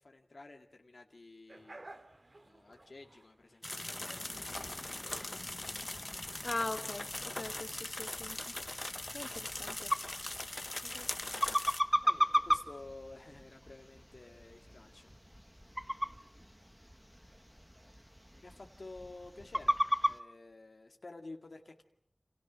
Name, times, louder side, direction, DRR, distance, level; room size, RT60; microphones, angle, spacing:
voice 1, 0.0-2.0 2.4-5.5 12.0-15.1 18.4-19.8 20.0-21.8, left 2 dB, 75° left, 3 dB, 2.2 m, -52 dB
sound 1, 1.5-6.5, right 2 dB, 50° right, 2.5 m, -55 dB
sound 2, 3.6-11.8, left 1 dB, 35° left, 1.1 m, -41 dB
sound 3, 4.5-20.2, equal, ahead, 1.5 m, -37 dB
voice 2, 6.4-8.6 9.1-9.9 10.9-11.4, left 2 dB, 55° left, 9 dB, 1.7 m, -41 dB
28.5 x 28.0 x 6.3 m, 0.66 s
wide cardioid pair, 65°, 0 cm